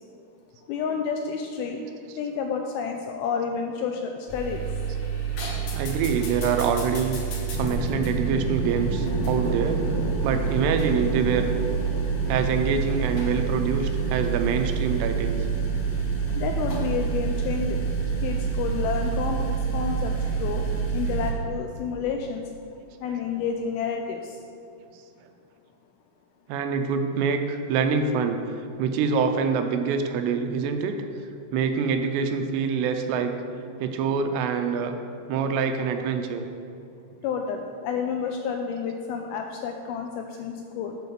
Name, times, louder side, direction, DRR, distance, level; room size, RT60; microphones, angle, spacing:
voice 1, 0.7-1.8 2.2-4.6 16.4-17.8 18.2-20.7 20.9-22.5 23.0-24.4 37.2-41.0, left 6 dB, 85° left, 3 dB, 2.2 m, -30 dB
voice 2, 1.8-2.2 5.7-7.2 7.5-9.8 10.2-11.5 12.3-15.5 21.1-21.2 23.1-23.2 26.5-28.4 28.8-30.9 31.5-33.3 33.8-34.9 35.3-36.4, right 6 dB, 85° right, 6 dB, 2.6 m, -25 dB
sound 1, 4.3-21.3, right 5 dB, 60° left, 1.8 m, -27 dB
8.1 x 4.6 x 6.8 m, 2.6 s
omnidirectional pair, 4.8 m